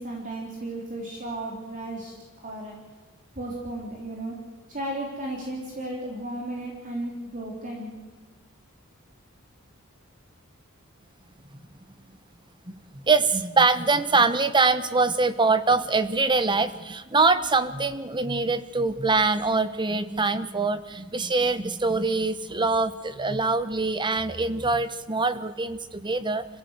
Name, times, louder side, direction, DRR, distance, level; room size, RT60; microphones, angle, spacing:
voice 1, 0.0-2.1 2.4-2.8 3.4-4.4 4.7-7.9, right 1 dB, 40° right, -1 dB, 3.8 m, -34 dB
voice 2, 12.9-26.4, right 3 dB, 20° right, 13 dB, 1.1 m, -24 dB
26.5 x 16.0 x 8.3 m, 1.3 s
head